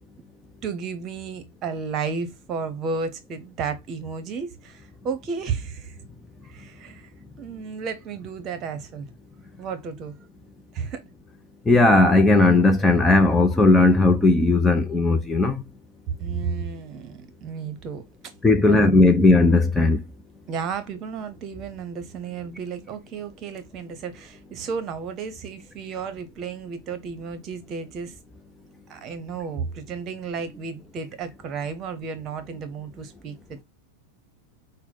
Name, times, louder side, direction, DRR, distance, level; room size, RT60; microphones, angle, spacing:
voice 1, 0.6-6.0 6.5-7.1 7.4-9.1 9.6-10.1 10.7-11.0 16.2-18.1 18.6-19.2 20.5-28.1 28.9-33.6, right 5 dB, 35° right, 1.0 m, -33 dB
voice 2, 11.7-15.5 18.4-20.0, left 2 dB, 10° left, 0.5 m, -17 dB
6.0 x 2.1 x 3.8 m
figure-of-eight pair, 90°, 0 cm